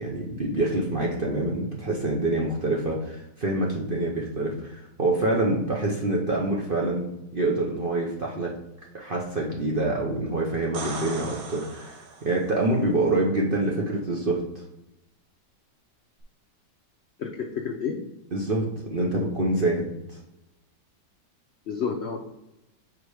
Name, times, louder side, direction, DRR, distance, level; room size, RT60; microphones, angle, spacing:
voice 1, 0.0-8.6 8.9-14.4 18.3-20.2, right 2 dB, 45° right, -2 dB, 0.7 m, -26 dB
sound 1, 10.5-12.5 16.2-16.3, right 3 dB, 90° right, 1.6 m, -37 dB
voice 2, 17.2-18.0 21.7-22.2, left 6 dB, 70° left, 2 dB, 0.6 m, -30 dB
4.9 x 4.3 x 4.8 m, 0.90 s
omnidirectional pair, 1.9 m